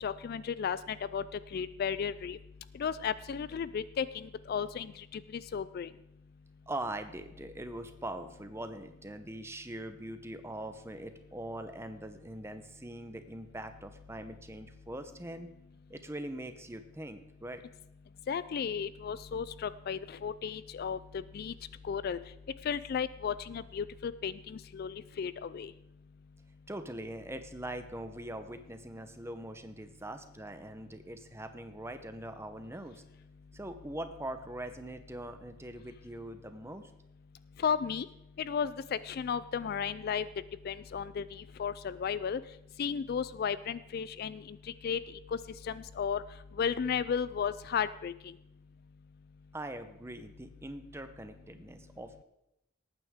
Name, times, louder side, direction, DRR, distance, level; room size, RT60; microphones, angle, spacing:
voice 1, 0.0-0.8 1.1-1.2 1.5-2.4 2.8-5.9 18.3-21.0 21.3-21.5 21.8-22.2 22.6-25.7 37.6-38.1 38.4-40.3 40.6-42.4 42.8-44.4 44.8-45.0 45.3-45.4 45.6-46.2 46.6-48.1, left 7 dB, 45° left, 16 dB, 0.3 m, -34 dB
voice 2, 6.7-15.5 15.9-17.6 26.7-33.0 33.5-36.9 49.5-52.2, right 1 dB, 10° right, 9 dB, 0.7 m, -42 dB
18.5 x 9.1 x 3.6 m, 0.88 s
head